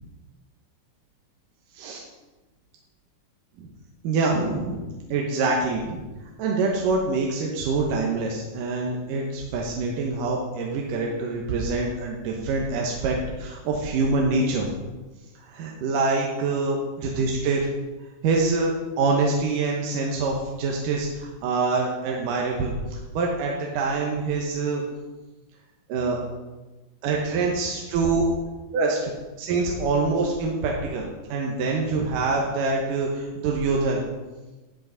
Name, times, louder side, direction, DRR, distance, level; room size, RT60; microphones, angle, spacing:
voice 1, 4.0-4.8 5.1-6.0 6.4-14.7 15.4-17.7 18.2-24.8 25.9-26.2 27.0-28.3 28.7-29.1 29.4-34.0, right 3 dB, 70° right, -1 dB, 2.4 m, -25 dB
12.5 x 8.4 x 4.0 m, 1.2 s
omnidirectional pair, 4.4 m